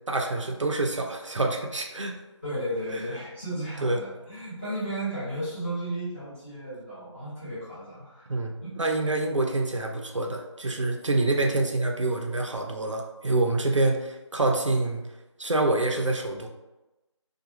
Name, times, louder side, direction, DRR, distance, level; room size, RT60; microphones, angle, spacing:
voice 1, 0.1-2.1 2.9-3.0 3.8-4.0 8.3-15.0 15.4-16.5, right 2 dB, 75° right, 2 dB, 0.6 m, -26 dB
voice 2, 2.4-8.3 8.6-8.7, right 1 dB, 20° left, -14 dB, 1.4 m, -34 dB
2.8 x 2.3 x 2.8 m, 1.0 s
figure-of-eight pair, 170°, 16 cm